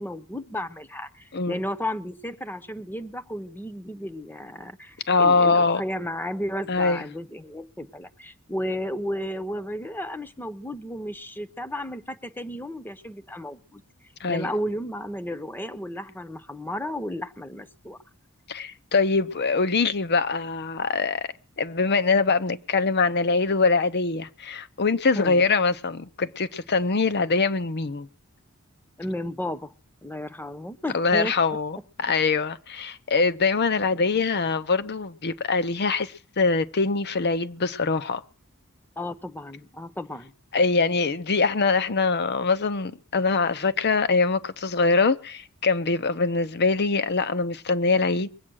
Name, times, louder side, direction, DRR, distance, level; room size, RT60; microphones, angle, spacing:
voice 1, 0.0-13.8 14.3-18.0 25.1-25.4 29.0-29.7 30.0-31.3 33.8-33.9 39.0-40.3, left 1 dB, 10° left, 0.8 m, -33 dB
voice 2, 5.1-5.8 6.7-7.0 14.2-14.5 18.5-21.3 21.6-28.1 30.9-38.2 40.5-48.3, left 4 dB, 50° left, 0.8 m, -23 dB
22.0 x 8.6 x 6.3 m
head